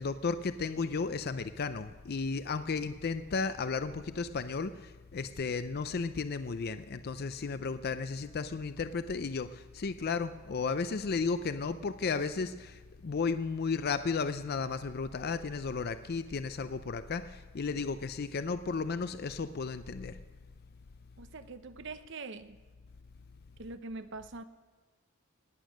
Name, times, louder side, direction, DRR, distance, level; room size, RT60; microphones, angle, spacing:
voice 1, 0.0-20.2, left 4 dB, 50° left, 11 dB, 0.5 m, -34 dB
voice 2, 21.2-22.6 23.6-24.4, right 3 dB, 60° right, 11 dB, 0.9 m, -43 dB
18.5 x 9.1 x 6.4 m, 1.3 s
head